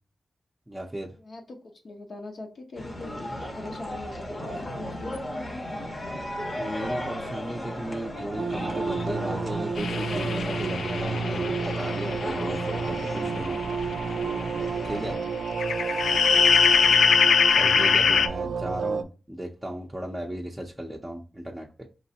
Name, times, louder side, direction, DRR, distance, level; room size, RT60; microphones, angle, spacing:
voice 1, 0.7-1.2 6.6-13.6 14.8-15.2 17.5-21.9, right 1 dB, 10° right, -2 dB, 0.6 m, -36 dB
voice 2, 1.2-5.7 13.0-13.3 14.8-15.3 16.2-17.0, left 2 dB, 60° left, 1 dB, 0.8 m, -42 dB
sound 1, 2.7-15.2, left 1 dB, 35° left, 0.9 m, -35 dB
sound 2, 8.4-19.0, right 5 dB, 85° right, 0.4 m, -30 dB
sound 3, 9.8-14.3 14.7-14.8 15.5-18.3, left 6 dB, 90° left, 0.3 m, -23 dB
5.0 x 3.1 x 2.8 m, 0.35 s
wide cardioid pair, 105°, 0 cm